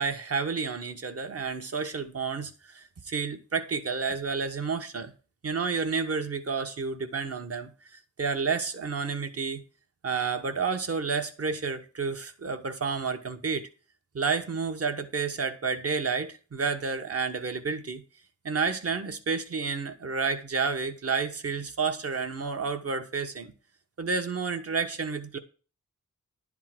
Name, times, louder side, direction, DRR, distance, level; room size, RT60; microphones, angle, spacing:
voice 1, 0.0-5.1 5.4-7.7 8.2-9.6 10.0-13.7 14.1-18.0 18.4-23.5 24.0-25.4, right 5 dB, 50° right, 1.0 m, -30 dB
11.0 x 3.7 x 7.5 m
wide cardioid pair, 105°, 31 cm